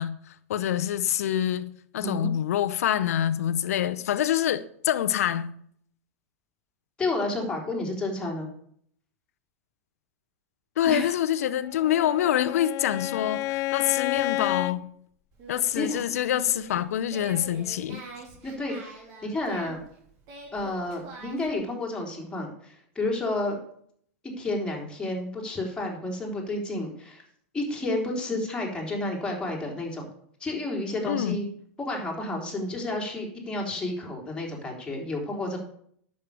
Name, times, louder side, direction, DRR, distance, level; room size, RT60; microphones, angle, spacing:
voice 1, 0.0-5.5 10.8-14.9 15.5-18.0 31.1-31.5, left 11 dB, 75° left, 0.8 m, -26 dB
voice 2, 2.0-2.3 7.0-8.5 10.8-11.1 15.7-16.0 18.4-18.9 19.2-19.8 20.5-23.6 24.4-27.2 27.5-30.1 30.4-31.4 31.8-35.6, left 2 dB, 10° left, 3.6 m, -31 dB
Bowed string instrument, 11.6-14.8, left 16 dB, 40° left, 0.5 m, -30 dB
Singing, 15.3-21.5, right 4 dB, 45° right, 3.8 m, -45 dB
10.0 x 6.7 x 7.0 m
hypercardioid pair, 115°, 8 cm